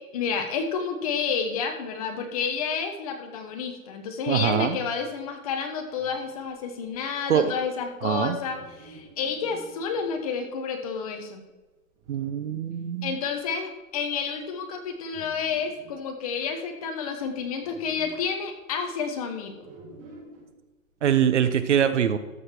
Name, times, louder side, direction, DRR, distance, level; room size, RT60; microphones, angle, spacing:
voice 1, 0.1-11.4 13.0-19.7, left 6 dB, 25° left, 5 dB, 1.1 m, -30 dB
voice 2, 4.3-4.8 7.3-7.5 8.0-8.4 12.1-13.2 21.0-22.2, right 9 dB, 55° right, 12 dB, 0.9 m, -23 dB
sound 1, 5.8-10.4 11.0-11.1 11.5-11.6 12.0-12.6 12.9-13.0 13.2-13.6 14.0-14.3 14.7-16.1 17.0-17.1 17.4-18.3 19.6-20.6, right 2 dB, 25° right, 2.0 m, -49 dB
13.5 x 6.6 x 4.4 m, 1.2 s
hypercardioid pair, 165°, 42 cm